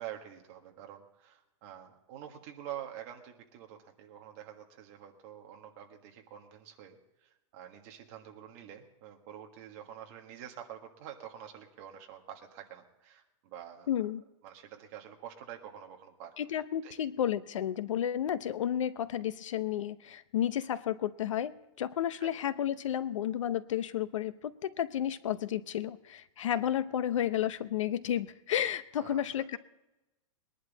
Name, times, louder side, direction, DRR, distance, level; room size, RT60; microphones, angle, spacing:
voice 1, 0.0-13.9 14.4-16.9 22.2-22.3 26.5-26.6 29.0-29.2, right 10 dB, 30° right, 3 dB, 1.5 m, -47 dB
voice 2, 13.9-14.2 16.4-29.6, left 10 dB, 70° left, 15 dB, 0.8 m, -32 dB
21.5 x 11.0 x 4.0 m, 0.96 s
supercardioid pair, 180°, 17 cm